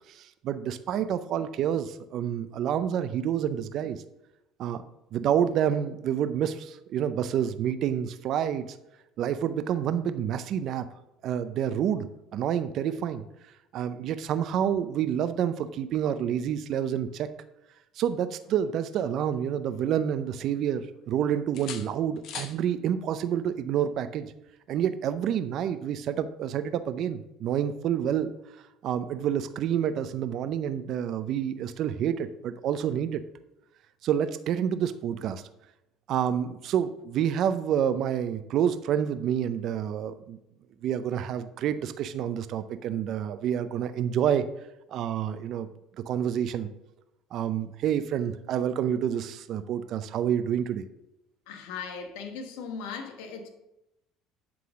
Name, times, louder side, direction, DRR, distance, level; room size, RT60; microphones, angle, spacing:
voice 1, 0.1-4.0 4.6-4.8 5.1-8.8 9.2-10.9 11.2-12.1 12.3-13.2 13.7-17.3 18.0-24.3 24.7-28.3 28.8-33.2 34.0-35.4 36.1-40.4 40.8-44.5 44.9-45.7 46.1-46.7 47.3-50.9, right 9 dB, 55° right, 0.5 m, -28 dB
sound 1, 18.4-20.0 20.3-21.1 21.5-22.6 24.5-24.7, left 8 dB, 60° left, 0.8 m, -44 dB
voice 2, 51.5-53.5, left 5 dB, 85° left, 1.2 m, -38 dB
8.6 x 3.9 x 6.2 m
supercardioid pair, 105°, 0 cm